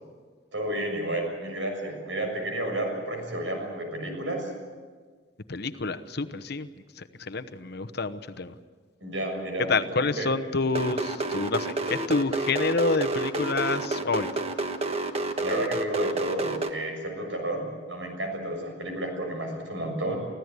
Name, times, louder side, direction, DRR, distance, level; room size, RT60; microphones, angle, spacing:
voice 1, 0.5-4.5 9.0-9.7 10.0-10.3 15.4-20.2, right 1 dB, 80° right, 3 dB, 6.7 m, -31 dB
voice 2, 5.5-6.7 7.0-8.5 9.7-14.3, left 3 dB, 60° left, 11 dB, 1.0 m, -28 dB
sound 1, 10.7-16.7, right 2 dB, 35° right, 1.4 m, -29 dB
25.0 x 16.0 x 8.3 m, 1.5 s
head